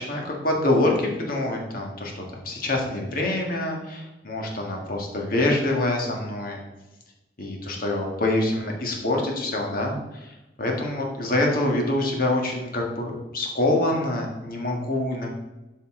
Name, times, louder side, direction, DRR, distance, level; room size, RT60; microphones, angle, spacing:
voice 1, 0.0-6.6 7.4-15.3, left 1 dB, 55° left, 0 dB, 1.7 m, -25 dB
8.9 x 5.5 x 3.8 m, 1.0 s
head